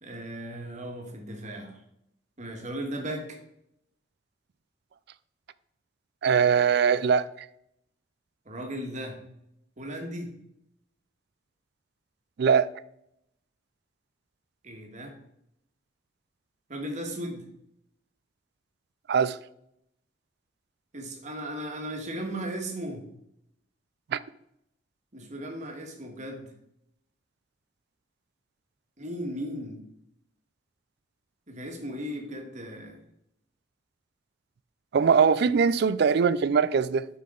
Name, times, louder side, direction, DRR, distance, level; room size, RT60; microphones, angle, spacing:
voice 1, 0.0-1.8 2.4-3.4 8.4-9.2 9.8-10.3 14.6-15.1 16.7-17.4 20.9-23.0 25.1-26.5 29.0-29.8 31.5-33.0, right 1 dB, 40° right, 1.6 m, -36 dB
voice 2, 6.2-7.3 12.4-12.7 19.1-19.4 24.1-24.2 34.9-37.1, right 6 dB, 60° right, 0.4 m, -21 dB
7.5 x 5.6 x 3.8 m
head